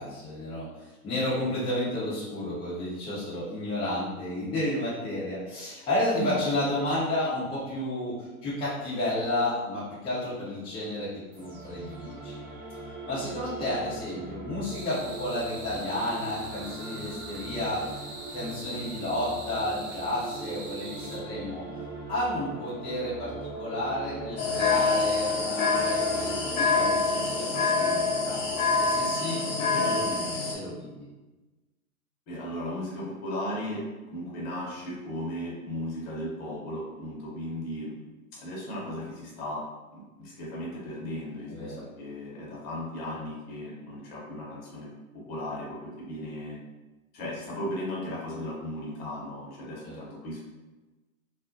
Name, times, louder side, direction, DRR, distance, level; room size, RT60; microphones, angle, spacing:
voice 1, 0.0-12.4 13.1-17.9 18.3-21.6 22.1-28.4 28.8-31.1 41.5-41.8 49.8-50.0, left 1 dB, 10° left, -10 dB, 0.7 m, -32 dB
sound 1, 11.3-29.1, right 2 dB, 20° right, 1.0 m, -40 dB
sound 2, 14.6-21.2, right 2 dB, 50° right, 0.7 m, -43 dB
sound 3, 24.4-30.5, left 4 dB, 65° left, 1.1 m, -26 dB
voice 2, 32.3-33.8 34.1-37.9 38.3-39.6 39.9-44.9 45.1-46.6 47.1-50.4, left 1 dB, 40° left, -5 dB, 0.9 m, -36 dB
2.4 x 2.0 x 2.6 m, 1.2 s
hypercardioid pair, 110°, 45 cm